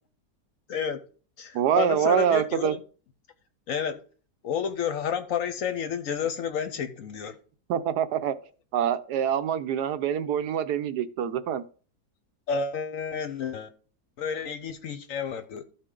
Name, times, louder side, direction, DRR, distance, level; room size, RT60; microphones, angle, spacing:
voice 1, 0.7-1.0 1.4-2.8 3.7-4.0 4.4-7.3 12.5-13.7 14.2-15.6, left 7 dB, 60° left, 1.0 m, -30 dB
voice 2, 1.5-2.7 7.7-8.3 8.7-11.6, right 9 dB, 80° right, 1.2 m, -25 dB
13.0 x 4.5 x 3.7 m
omnidirectional pair, 1.8 m